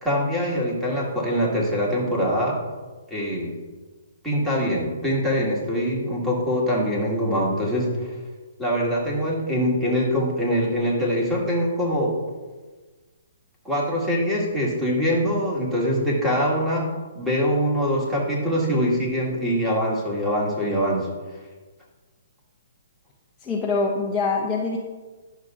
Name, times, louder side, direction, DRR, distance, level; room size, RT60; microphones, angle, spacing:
voice 1, 0.0-2.6 3.1-3.6 4.2-8.2 8.6-12.2 13.7-16.9 17.2-21.1, equal, 5° right, -5 dB, 1.8 m, -23 dB
voice 2, 23.4-24.8, left 4 dB, 15° left, -2 dB, 0.7 m, -24 dB
11.0 x 6.4 x 2.5 m, 1.3 s
hypercardioid pair, 150°, 0 cm